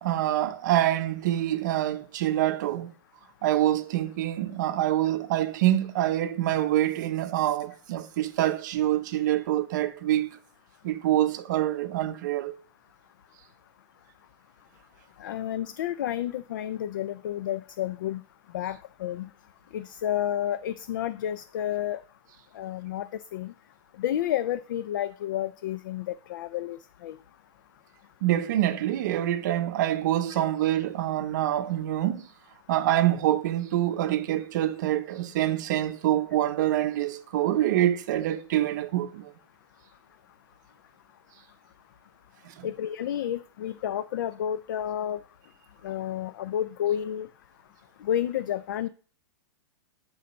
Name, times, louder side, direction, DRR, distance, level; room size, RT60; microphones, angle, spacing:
voice 1, 0.0-2.9 3.4-10.4 10.8-12.6 28.2-32.3 32.7-39.3 42.6-42.7, right 13 dB, 40° right, 0.7 m, -26 dB
voice 2, 15.2-18.2 18.5-19.3 19.7-22.0 22.6-23.1 23.3-23.5 24.0-27.1 42.6-45.2 45.8-47.3 48.0-48.9, left 11 dB, 45° left, 0.4 m, -30 dB
11.0 x 4.0 x 5.1 m
supercardioid pair, 175°, 15 cm